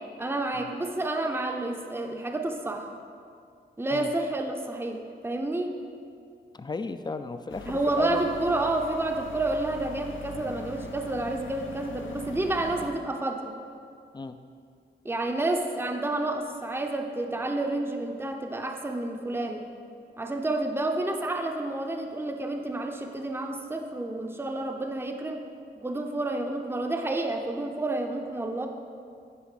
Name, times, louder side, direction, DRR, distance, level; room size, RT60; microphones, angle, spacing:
voice 1, 0.2-2.9 3.8-5.7 7.7-13.5 15.0-19.6 20.2-25.5 25.8-28.7, right 2 dB, 10° right, 3 dB, 0.7 m, -29 dB
voice 2, 6.5-8.3 14.1-14.4, left 3 dB, 20° left, 10 dB, 0.4 m, -35 dB
sound 1, 7.5-12.9, left 4 dB, 80° left, 0.6 m, -42 dB
10.0 x 5.1 x 4.9 m, 2.3 s
wide cardioid pair, 70°, 20 cm